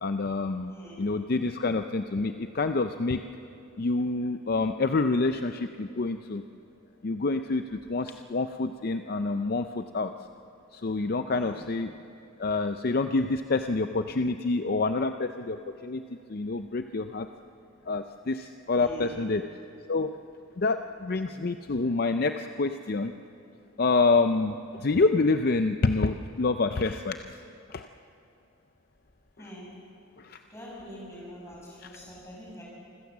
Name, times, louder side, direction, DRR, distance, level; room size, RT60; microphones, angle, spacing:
voice 1, 0.0-3.2 3.8-6.4 7.0-10.1 10.7-11.9 12.4-15.6 15.8-16.0 16.3-17.3 17.9-19.4 19.9-20.1 20.6-23.1 23.8-27.2 27.7-27.9 29.4-29.5 30.2-30.4 31.8-31.9, left 3 dB, 45° left, 8 dB, 0.5 m, -27 dB
voice 2, 0.6-1.1 11.3-11.6 18.7-19.2 29.4-29.7 30.5-32.6, right 1 dB, 15° left, -4 dB, 6.6 m, -44 dB
26.5 x 15.5 x 7.3 m, 2.6 s
head